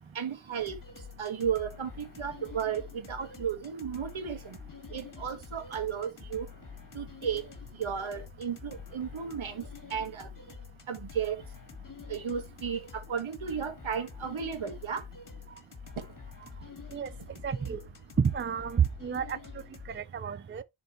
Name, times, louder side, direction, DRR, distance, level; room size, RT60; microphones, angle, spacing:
voice 1, 0.2-0.8 1.2-2.8 3.1-4.6 4.9-6.5 6.9-7.4 7.8-9.6 9.9-10.3 10.9-11.4 12.1-15.0, right 7 dB, 70° right, 1.8 m, -34 dB
sound 1, 0.6-20.0, left 6 dB, 40° left, 1.7 m, -47 dB
voice 2, 17.4-17.8 18.2-19.4 19.9-20.6, right 7 dB, 25° right, 0.4 m, -29 dB
10.5 x 3.9 x 3.0 m
wide cardioid pair, 110°, 49 cm